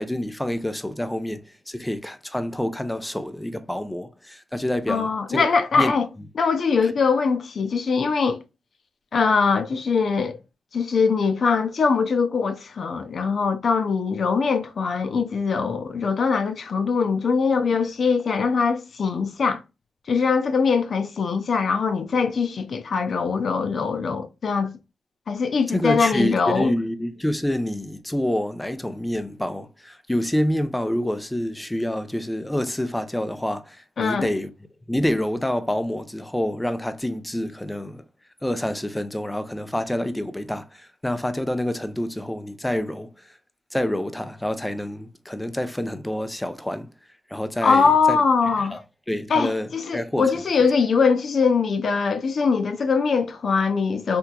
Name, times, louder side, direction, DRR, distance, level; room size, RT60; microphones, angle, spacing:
voice 1, 0.0-5.5 5.7-5.9 6.8-6.9 25.7-34.5 34.9-38.0 38.4-43.1 43.7-46.9 47.3-48.2 48.6-48.8 49.1-50.4, left 1 dB, 10° left, 0.6 m, -27 dB
voice 2, 4.9-6.1 6.4-8.4 9.1-10.4 10.7-19.6 20.1-24.7 25.3-26.7 34.0-34.3 47.6-48.8 49.3-54.2, left 5 dB, 60° left, 0.6 m, -22 dB
3.5 x 2.8 x 2.3 m
supercardioid pair, 55°, 0 cm